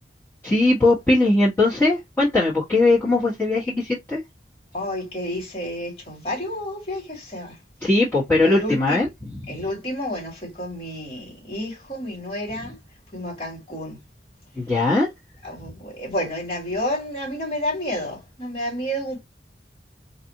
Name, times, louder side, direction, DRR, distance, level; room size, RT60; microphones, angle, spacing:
voice 1, 0.4-4.2 7.8-9.6 14.6-15.1, left 2 dB, 10° left, 1.3 m, -20 dB
voice 2, 4.7-7.6 8.3-9.0 9.5-12.8 13.1-14.0 15.4-19.2, equal, 35° left, 2.3 m, -30 dB
4.1 x 2.6 x 2.7 m
head